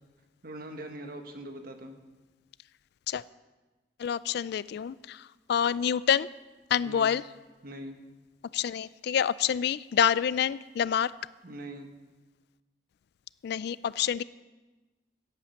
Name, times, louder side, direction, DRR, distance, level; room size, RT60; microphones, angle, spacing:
voice 1, 0.4-2.0 6.8-7.2 7.6-8.0 11.4-11.9, right 1 dB, 55° right, 5 dB, 1.5 m, -42 dB
voice 2, 4.0-6.3 6.7-7.2 8.5-11.1 13.4-14.2, left 8 dB, 65° left, 18 dB, 0.3 m, -27 dB
11.0 x 8.6 x 8.4 m, 1.2 s
head